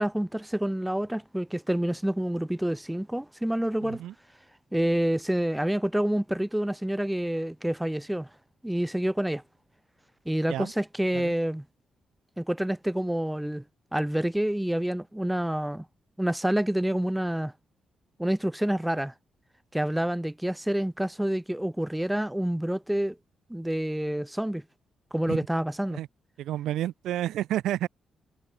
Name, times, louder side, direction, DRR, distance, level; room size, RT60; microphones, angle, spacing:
voice 1, 0.0-4.0 4.7-8.3 8.6-9.4 10.3-11.6 12.4-13.6 13.9-15.8 16.2-17.5 18.2-19.1 19.7-23.2 23.5-24.6 25.1-26.0, right 1 dB, 5° right, 0.9 m, -28 dB
voice 2, 3.8-4.1 10.5-10.7 11.1-11.3 25.3-25.4 25.9-26.1 26.4-27.9, right 13 dB, 85° right, 1.0 m, -30 dB
supercardioid pair, 60°, 0 cm